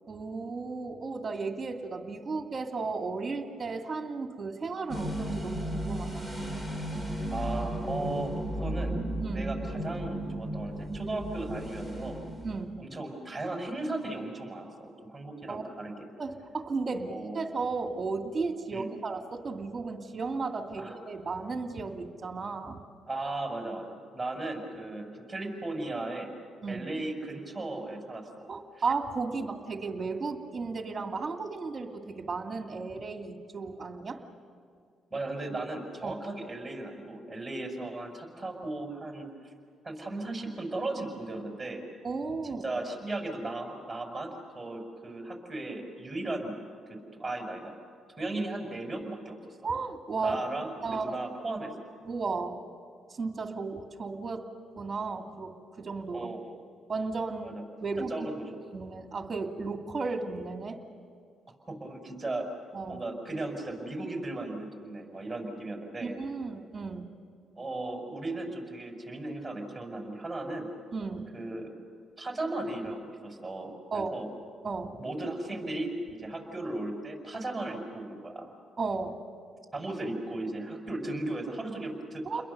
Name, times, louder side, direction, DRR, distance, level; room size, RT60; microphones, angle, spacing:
voice 1, 0.1-6.2 9.2-9.5 12.4-12.8 15.5-15.6 16.2-22.8 26.6-26.8 28.5-34.2 36.0-36.2 42.0-42.6 49.6-50.4 50.8-51.2 52.0-52.6 53.1-54.4 54.8-56.3 56.9-57.6 57.8-58.3 58.7-60.8 62.7-63.0 66.0-67.0 70.9-71.3 73.9-74.1 74.6-75.0 78.8-79.2 82.2-82.4, right 4 dB, 30° right, 4 dB, 2.5 m, -34 dB
sound 1, 4.9-12.8, right 1 dB, 15° left, 2.5 m, -34 dB
voice 2, 7.3-9.0 9.3-12.2 12.8-16.1 17.1-17.4 18.7-18.9 20.8-21.0 23.1-26.3 26.7-28.5 35.1-39.3 39.8-41.8 42.4-46.6 46.9-47.7 48.2-49.7 50.2-51.7 56.1-56.6 57.4-57.6 58.1-58.5 61.7-62.5 62.9-66.2 67.6-70.7 71.3-71.7 72.2-74.3 75.0-78.5 79.7-82.4, right 2 dB, 15° right, 2 dB, 5.8 m, -36 dB
30.0 x 22.0 x 6.9 m, 2.2 s
cardioid pair, 90°, 0 cm